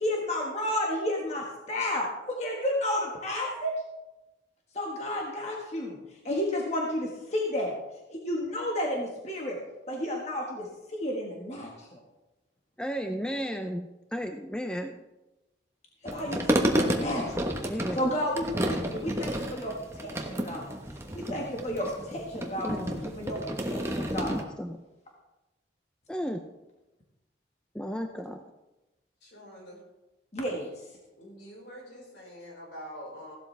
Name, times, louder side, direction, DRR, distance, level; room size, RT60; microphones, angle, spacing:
voice 1, 0.0-3.7 4.7-6.0 6.2-7.7 8.1-9.6 9.9-12.0 16.0-17.4 17.9-20.7 21.1-23.4 23.7-24.3 30.3-30.8, left 1 dB, 35° left, -1 dB, 1.7 m, -32 dB
voice 2, 12.8-15.0 17.5-18.0 22.6-22.9 24.3-24.8 26.1-26.5 27.7-28.4, equal, 5° left, 5 dB, 0.5 m, -34 dB
sound 1, 16.1-24.4, equal, 15° right, 1.1 m, -31 dB
voice 3, 29.2-29.8 31.2-33.4, equal, 70° left, -2 dB, 4.8 m, -45 dB
16.0 x 12.0 x 3.4 m, 1.0 s
head